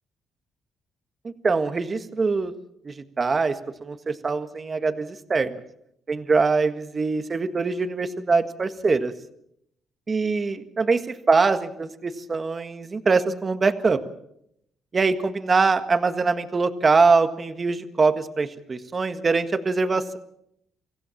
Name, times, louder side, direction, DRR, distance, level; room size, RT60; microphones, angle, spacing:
voice 1, 1.2-2.5 2.8-3.5 3.8-5.6 6.1-9.1 10.1-11.0 11.3-14.0 14.9-20.2, right 4 dB, 35° right, 9 dB, 1.6 m, -23 dB
25.5 x 15.5 x 7.2 m, 0.75 s
cardioid pair, 90°, 0 cm